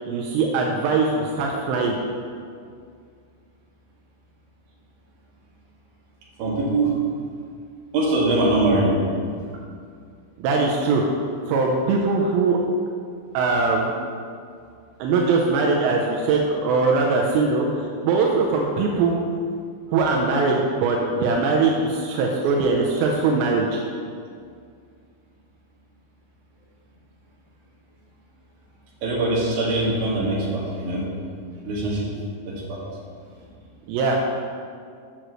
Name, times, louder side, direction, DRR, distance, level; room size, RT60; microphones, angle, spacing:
voice 1, 0.1-2.0 10.4-11.0 11.5-12.6 13.3-13.9 15.0-19.2 19.9-23.8 33.9-34.2, right 4 dB, 85° right, 0 dB, 2.7 m, -21 dB
voice 2, 6.4-6.9 7.9-9.0 29.0-31.0 31.6-32.1 32.5-32.8, right 2 dB, 55° right, -6 dB, 3.3 m, -22 dB
16.0 x 6.3 x 3.1 m, 2.2 s
omnidirectional pair, 5.5 m